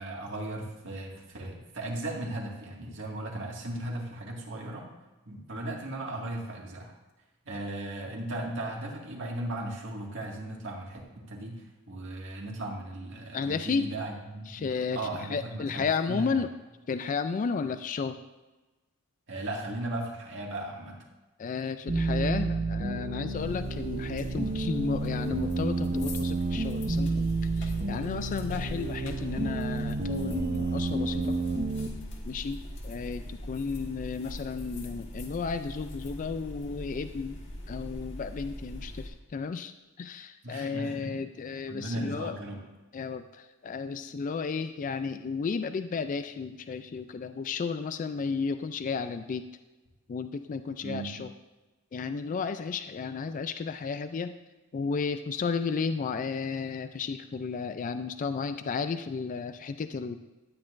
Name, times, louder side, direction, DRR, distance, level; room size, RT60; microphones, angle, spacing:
voice 1, 0.0-4.9 5.3-6.9 7.5-16.4 19.3-21.0 40.4-41.2 41.7-42.6 50.8-51.1, right 1 dB, 60° right, -1 dB, 2.0 m, -37 dB
voice 2, 13.3-13.9 14.5-15.0 15.3-16.5 16.9-18.2 21.4-27.3 27.6-31.3 32.3-37.4 37.7-39.7 40.0-42.3 42.9-43.2 43.6-49.4 50.1-51.3 51.9-54.3 54.7-60.2, left 5 dB, 40° left, 10 dB, 0.3 m, -33 dB
sound 1, 21.9-31.9, right 3 dB, 40° right, 0.8 m, -30 dB
sound 2, 23.3-39.1, left 1 dB, 60° left, 1.6 m, -41 dB
13.0 x 9.8 x 2.5 m, 1.1 s
head